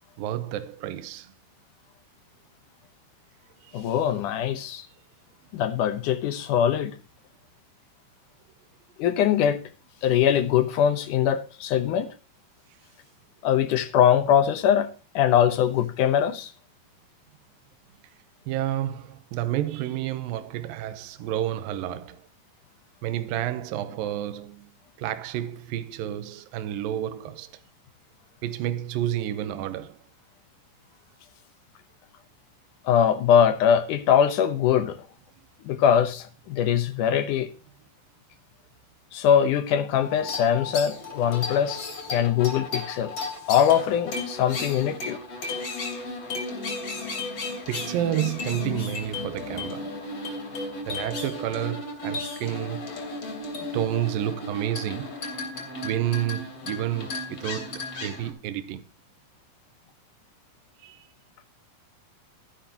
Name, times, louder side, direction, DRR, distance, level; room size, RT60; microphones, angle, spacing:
voice 1, 0.2-1.3 3.6-3.9 18.5-22.3 23.0-24.7 25.0-27.5 28.4-30.0 47.7-50.0 50.9-53.0 53.6-55.1 55.8-58.8 60.8-61.1, right 12 dB, 75° right, 2.3 m, -30 dB
voice 2, 3.7-4.9 5.5-6.9 9.0-9.6 10.0-12.1 13.4-14.9 15.1-16.5 32.8-35.0 35.7-37.5 39.1-41.8 42.1-43.1 43.5-45.2, left 9 dB, 70° left, 2.1 m, -22 dB
sound 1, 39.9-58.3, left 3 dB, 40° left, 3.6 m, -34 dB
13.5 x 11.5 x 2.9 m
omnidirectional pair, 4.5 m